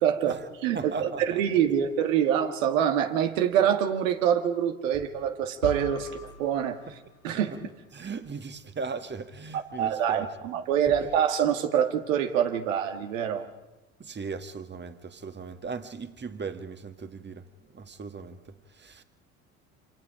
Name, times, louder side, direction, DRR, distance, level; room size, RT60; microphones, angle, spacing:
voice 1, 0.0-6.1 6.4-6.8 7.2-7.5 9.8-13.5, right 9 dB, 70° right, 2.1 m, -25 dB
voice 2, 0.7-1.4 6.9-7.0 7.3-7.6 7.9-10.4 10.9-11.1 14.0-19.0, right 5 dB, 25° right, 1.9 m, -38 dB
sound 1, 5.6-7.7, left 2 dB, 85° left, 1.8 m, -41 dB
27.5 x 26.0 x 5.1 m
figure-of-eight pair, 60°, 40 cm